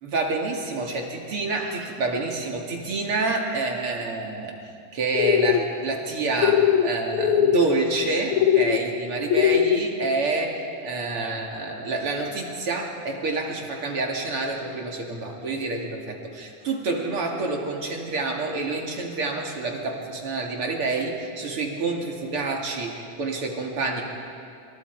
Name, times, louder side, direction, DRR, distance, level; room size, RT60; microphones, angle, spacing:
voice 1, 0.0-4.5 4.9-24.0, right 3 dB, 45° right, 1 dB, 3.0 m, -28 dB
sound 1, 5.1-5.6 6.4-6.9 7.1-7.6 8.3-8.8 9.3-9.8, left 9 dB, 75° left, 2.4 m, -20 dB
29.0 x 27.5 x 4.8 m, 2.5 s
omnidirectional pair, 3.5 m